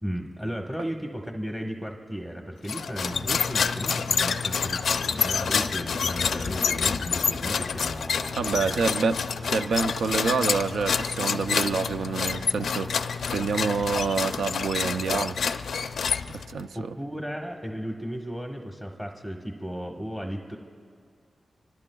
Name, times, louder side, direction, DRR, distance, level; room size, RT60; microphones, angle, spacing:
voice 1, 0.0-8.8 9.4-9.5 11.3-11.5 16.7-20.6, equal, 15° right, 1 dB, 1.2 m, -35 dB
sound 1, 2.6-16.6, left 6 dB, 85° left, 0.4 m, -28 dB
voice 2, 8.4-15.4 16.3-16.9, right 5 dB, 90° right, 9 dB, 0.5 m, -27 dB
25.0 x 24.5 x 2.3 m, 2.4 s
cardioid pair, 65°, 0 cm